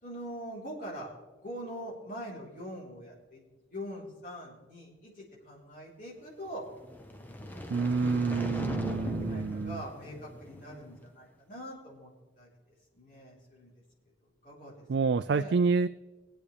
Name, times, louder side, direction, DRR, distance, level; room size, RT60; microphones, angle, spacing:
voice 1, 0.0-6.6 7.4-12.1 12.4-13.7 14.4-14.7 15.2-15.6, equal, 40° left, -4 dB, 4.0 m, -44 dB
sound 1, 6.7-11.0, left 1 dB, 10° left, 0.7 m, -39 dB
voice 2, 7.7-9.8 14.9-15.9, right 4 dB, 60° right, 11 dB, 0.3 m, -28 dB
22.5 x 8.4 x 3.4 m, 1.2 s
head